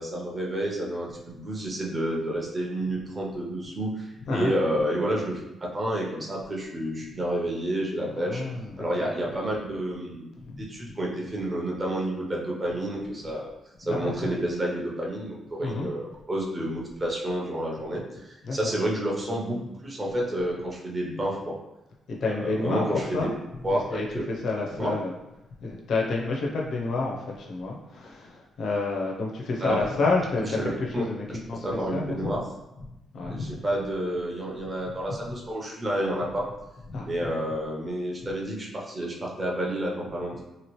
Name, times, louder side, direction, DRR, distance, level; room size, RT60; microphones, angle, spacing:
voice 1, 0.0-8.4 8.8-10.3 10.6-13.5 13.8-21.5 22.2-23.3 23.6-24.2 24.8-24.9 29.6-29.8 30.4-30.5 30.9-31.0 31.3-31.4 31.6-32.4 33.3-36.4 37.0-40.4, right 1 dB, 25° right, -3 dB, 0.6 m, -30 dB
voice 2, 4.2-4.5 8.1-9.1 10.5-10.6 13.9-14.3 15.6-15.9 18.4-18.6 22.1-23.4 23.7-25.1 25.6-32.4 32.8-32.9 33.1-33.5 35.3-35.4 36.9-37.1, left 3 dB, 55° left, -2 dB, 0.5 m, -29 dB
2.9 x 2.8 x 3.0 m, 0.98 s
cardioid pair, 155°, 0 cm